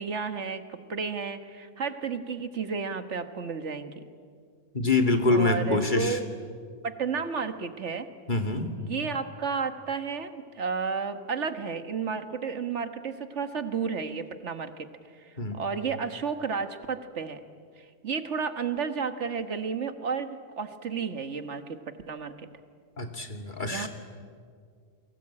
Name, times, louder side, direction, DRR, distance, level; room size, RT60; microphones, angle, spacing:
voice 1, 0.0-3.9 5.3-6.3 6.8-8.1 8.8-14.9 15.2-17.4 18.0-22.4 23.7-23.9, right 5 dB, 75° right, 9 dB, 1.7 m, -32 dB
voice 2, 4.7-6.2 8.3-8.7 15.4-15.6 23.0-23.9, left 3 dB, 45° left, 4 dB, 2.6 m, -25 dB
30.0 x 22.5 x 8.7 m, 2.1 s
omnidirectional pair, 1.2 m